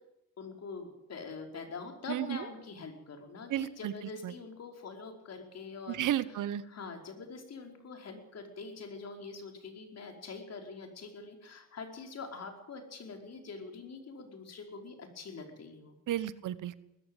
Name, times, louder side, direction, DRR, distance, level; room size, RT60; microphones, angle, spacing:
voice 1, 0.4-6.1 6.7-16.0, left 4 dB, 50° left, 4 dB, 5.0 m, -44 dB
voice 2, 2.1-2.4 3.5-3.9 4.2-4.3 5.9-6.6 16.1-16.7, right 12 dB, 70° right, 16 dB, 1.2 m, -33 dB
20.0 x 15.0 x 9.1 m, 0.87 s
cardioid pair, 85°, 32 cm